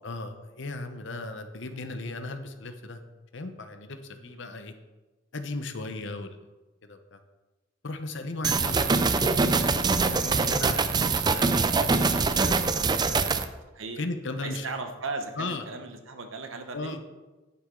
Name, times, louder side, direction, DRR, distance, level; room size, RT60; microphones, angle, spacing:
voice 1, 0.0-3.0 3.3-4.7 5.3-6.4 6.8-7.2 7.8-12.5 12.8-13.3 14.0-14.7 15.4-15.6 16.7-17.0, left 2 dB, 65° left, 8 dB, 0.9 m, -37 dB
voice 2, 4.2-4.6 13.7-14.0 14.4-17.0, right 3 dB, 85° right, 6 dB, 1.0 m, -37 dB
sound 1, 8.4-13.5, right 4 dB, 20° right, 0.4 m, -24 dB
9.9 x 8.2 x 3.8 m, 1.2 s
head